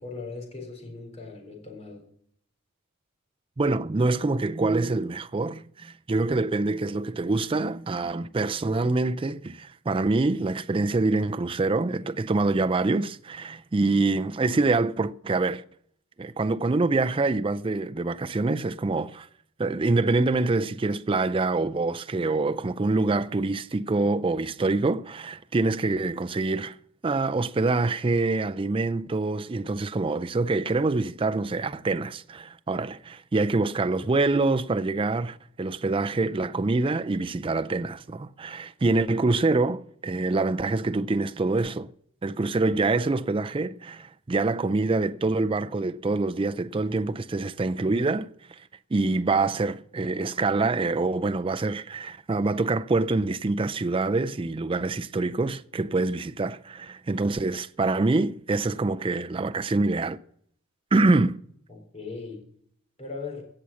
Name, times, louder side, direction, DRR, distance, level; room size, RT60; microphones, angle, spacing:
voice 1, 0.0-2.1 61.7-62.5 63.0-63.4, left 4 dB, 30° left, 3.9 m, -39 dB
voice 2, 3.6-15.6 16.2-19.3 19.6-26.8 27.0-41.9 42.2-48.6 48.9-60.2 60.9-61.4, right 3 dB, 25° right, 0.4 m, -25 dB
16.5 x 6.2 x 7.1 m
head